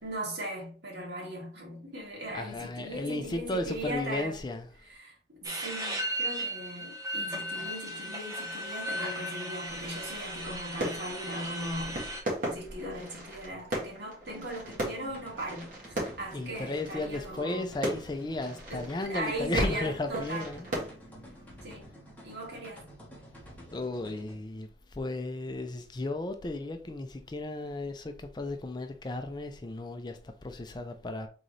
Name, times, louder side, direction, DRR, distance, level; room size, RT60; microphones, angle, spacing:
voice 1, 0.0-4.4 4.9-12.1 12.4-17.7 18.7-20.5 21.6-21.9 22.2-22.9, right 1 dB, 70° right, 1.9 m, -38 dB
voice 2, 2.3-4.7 16.3-20.7 23.7-31.3, left 2 dB, 25° left, 0.4 m, -34 dB
sound 1, 5.4-12.2, right 1 dB, 20° right, 0.8 m, -36 dB
sound 2, 9.7-20.9, right 1 dB, 50° right, 1.9 m, -38 dB
sound 3, 14.5-24.3, equal, 10° left, 1.3 m, -50 dB
4.0 x 3.8 x 3.2 m
head